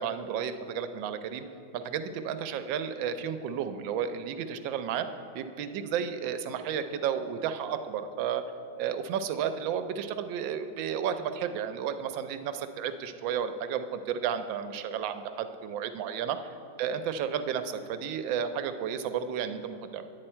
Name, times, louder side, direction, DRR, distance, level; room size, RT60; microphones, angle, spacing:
voice 1, 0.0-1.5 1.7-5.1 5.3-8.4 8.8-16.4 16.8-20.1, right 8 dB, 80° right, 9 dB, 1.3 m, -32 dB
9.8 x 8.4 x 4.4 m, 2.8 s
omnidirectional pair, 2.1 m